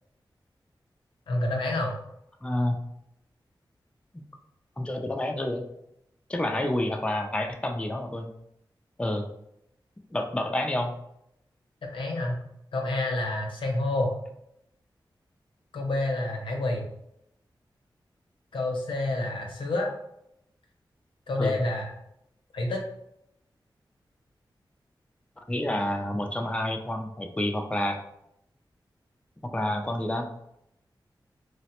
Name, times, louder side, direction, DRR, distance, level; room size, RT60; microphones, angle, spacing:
voice 1, 1.3-1.9 11.9-12.4 12.7-14.1 15.7-16.9 18.5-19.9 21.3-21.9 22.5-22.8, left 2 dB, 80° left, 1 dB, 0.6 m, -28 dB
voice 2, 2.4-2.8 4.8-5.7 6.3-8.3 9.0-9.3 10.1-10.9 21.4-21.6 25.5-28.0 29.4-30.3, left 1 dB, 15° left, 3 dB, 0.4 m, -29 dB
3.2 x 2.0 x 2.9 m, 0.78 s
cardioid pair, 50°, 9 cm